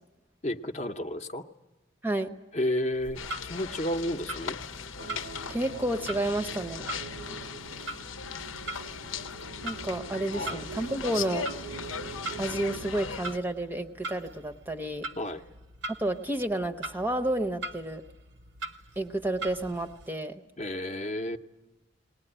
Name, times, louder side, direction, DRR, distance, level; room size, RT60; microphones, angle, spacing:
voice 1, 0.4-1.4 2.5-4.6 10.3-10.6 15.2-15.4 20.6-21.4, left 1 dB, 35° left, 6 dB, 0.8 m, -32 dB
voice 2, 2.0-2.3 5.5-6.9 9.6-11.5 12.4-15.1 16.0-18.0 19.0-20.4, right 1 dB, 10° right, 6 dB, 0.7 m, -30 dB
Clock, 2.9-20.1, right 2 dB, 60° right, 0.8 m, -43 dB
sound 1, 3.2-13.4, left 6 dB, 85° left, 0.9 m, -39 dB
sound 2, 5.0-12.9, right 4 dB, 85° right, 1.0 m, -43 dB
20.0 x 19.0 x 10.0 m, 1.1 s
head